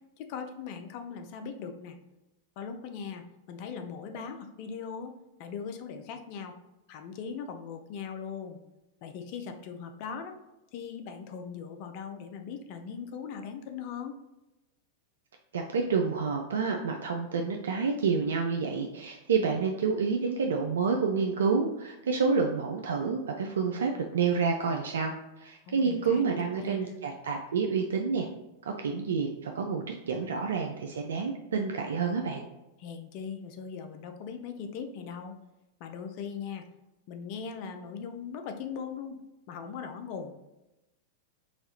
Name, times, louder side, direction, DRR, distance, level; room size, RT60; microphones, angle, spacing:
voice 1, 0.2-2.0 2.6-5.1 5.4-6.5 6.9-8.6 9.0-10.4 10.7-14.1 25.7-27.0 32.8-35.4 35.8-36.6 37.1-39.2 39.5-40.3, left 6 dB, 50° left, 6 dB, 0.5 m, -39 dB
voice 2, 15.5-25.1 25.4-28.3 28.7-32.5, right 5 dB, 75° right, 3 dB, 0.3 m, -29 dB
4.0 x 2.3 x 2.8 m, 0.96 s
hypercardioid pair, 100°, 0 cm